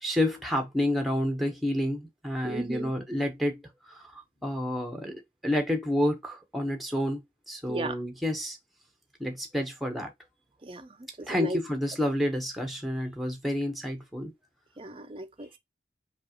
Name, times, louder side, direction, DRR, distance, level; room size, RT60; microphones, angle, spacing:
voice 1, 0.0-7.2 7.5-8.6 9.2-10.1 11.3-14.3, left 1 dB, ahead, 0.9 m, -29 dB
voice 2, 2.4-2.9 7.7-8.0 10.6-10.9 11.2-11.6 14.8-15.6, right 2 dB, 30° right, 0.5 m, -35 dB
5.2 x 2.4 x 2.9 m
head